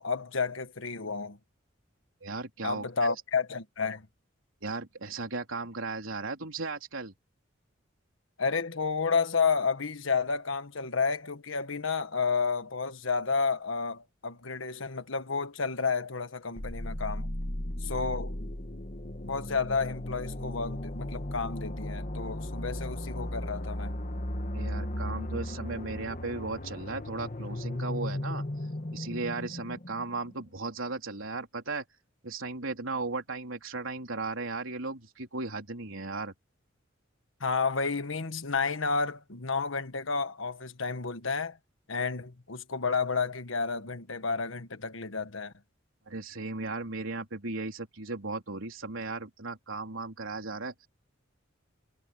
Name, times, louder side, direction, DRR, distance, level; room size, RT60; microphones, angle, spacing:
voice 1, 0.0-1.4 2.6-4.1 8.4-17.3 17.8-18.5 19.2-24.0 37.4-41.6 41.9-45.5, left 4 dB, 75° left, 1.5 m, -31 dB
voice 2, 2.2-2.9 4.6-7.1 24.5-28.4 28.9-31.9 32.2-36.3 46.1-50.9, right 3 dB, 80° right, 3.7 m, -36 dB
sound 1, 16.6-30.3, left 1 dB, 40° left, 1.8 m, -36 dB
head